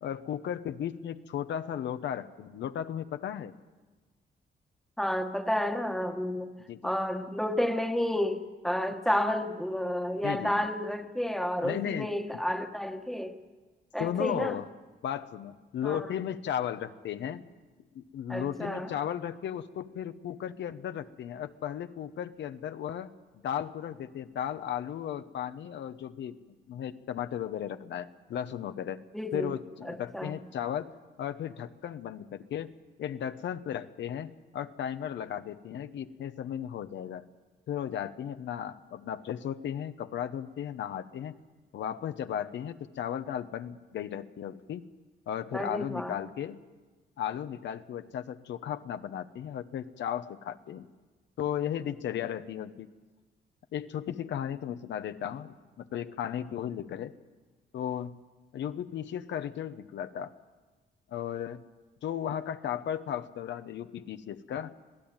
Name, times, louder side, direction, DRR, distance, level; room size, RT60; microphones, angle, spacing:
voice 1, 0.0-3.5 6.7-6.9 10.2-10.5 11.6-12.1 14.0-14.7 15.0-17.4 17.9-23.1 23.4-26.4 26.7-29.0 29.3-30.9 31.2-32.7 33.0-37.2 37.7-41.4 41.7-44.8 45.3-46.6 47.2-50.9 51.4-52.9 53.7-57.1 57.7-58.2 58.5-60.3 61.1-61.6 62.0-64.7, left 9 dB, 80° left, 10 dB, 1.1 m, -35 dB
voice 2, 5.0-6.5 6.8-13.3 13.9-14.6 15.8-16.1 18.3-18.9 29.1-29.5 29.8-30.3 45.5-46.2, left 1 dB, ahead, 6 dB, 1.3 m, -31 dB
25.5 x 17.0 x 8.9 m, 1.3 s
wide cardioid pair, 160°, 19 cm